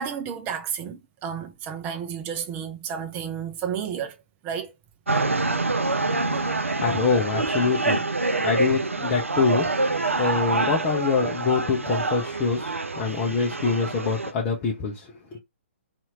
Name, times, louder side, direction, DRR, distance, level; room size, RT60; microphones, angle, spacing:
voice 1, 0.0-4.2 4.4-4.7, right 8 dB, 20° right, 0.5 m, -31 dB
sound 1, 5.1-14.3, right 3 dB, 85° right, 0.4 m, -26 dB
voice 2, 6.3-8.0 8.4-15.4, left 5 dB, 25° left, 0.6 m, -25 dB
2.8 x 2.5 x 2.8 m
figure-of-eight pair, 130°, 7 cm